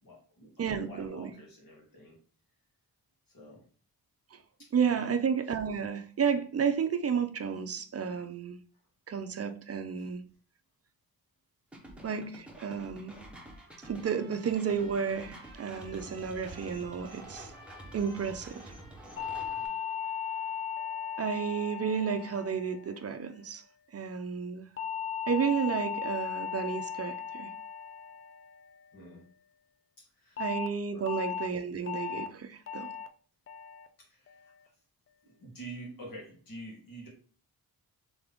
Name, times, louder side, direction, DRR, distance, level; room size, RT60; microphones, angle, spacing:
voice 1, 0.0-2.2 3.3-3.6 4.6-5.1 10.0-10.1 19.6-19.7 28.9-29.3 30.0-30.5 30.9-31.1 34.0-34.5 35.2-37.1, right 1 dB, 65° left, 1.9 m, -48 dB
voice 2, 0.6-1.3 4.3-4.4 4.7-8.6 9.1-10.2 12.0-13.2 13.8-17.5 17.9-18.7 21.2-23.6 23.9-24.7 25.3-27.5 30.4-32.9, right 6 dB, 40° right, 0.4 m, -32 dB
sound 1, 11.7-19.7, right 1 dB, 5° right, 0.8 m, -49 dB
Trumpet, 13.2-20.8, right 3 dB, 15° left, 2.1 m, -56 dB
sound 2, 19.2-23.6 24.8-29.2 30.4-30.7 31.1-31.5 31.9-32.3 32.7-33.1 33.5-33.9 34.3-34.7, left 8 dB, 35° left, 0.4 m, -37 dB
3.6 x 3.4 x 3.5 m
wide cardioid pair, 155°, 38 cm